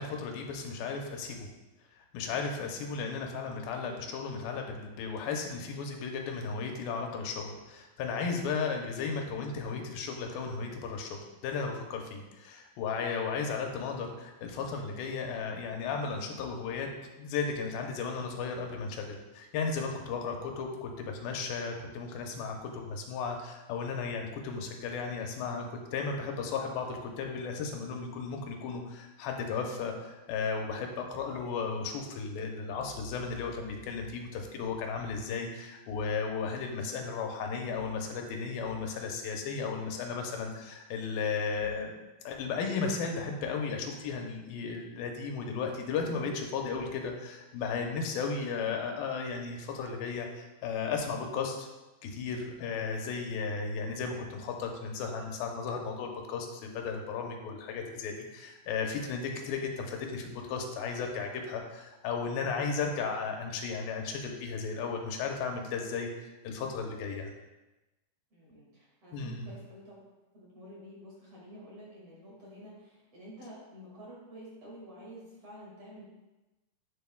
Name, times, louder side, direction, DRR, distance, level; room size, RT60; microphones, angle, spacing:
voice 1, 0.0-1.5 2.1-11.2 11.4-16.9 17.2-41.9 42.2-51.7 52.0-66.1 66.4-67.3 69.1-69.5, left 5 dB, 85° left, 2 dB, 2.6 m, -35 dB
voice 2, 68.3-76.1, equal, 45° right, -6 dB, 2.8 m, -49 dB
9.0 x 7.0 x 2.3 m, 1.1 s
omnidirectional pair, 4.1 m